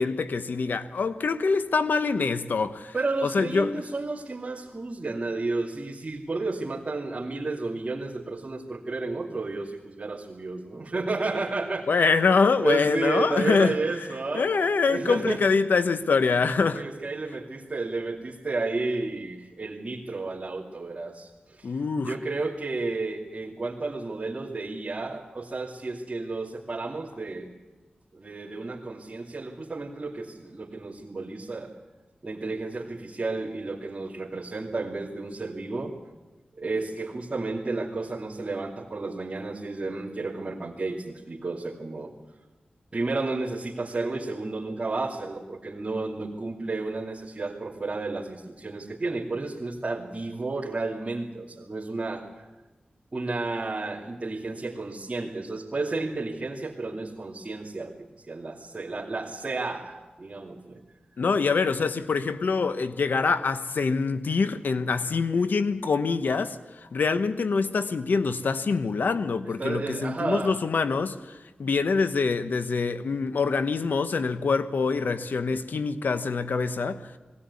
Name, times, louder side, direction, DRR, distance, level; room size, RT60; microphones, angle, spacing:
voice 1, 0.0-2.9 3.2-3.7 11.9-13.8 14.3-16.8 21.6-22.1 61.2-66.6 66.9-77.1, left 4 dB, 85° left, 1.0 m, -25 dB
voice 2, 2.9-11.9 12.6-14.5 14.9-15.4 16.7-21.7 22.0-27.5 28.1-31.7 32.2-36.0 36.6-42.1 42.9-52.5 53.1-60.8 69.6-70.6, right 3 dB, 40° right, 2.7 m, -32 dB
20.0 x 17.5 x 9.7 m
wide cardioid pair, 60°, 3 cm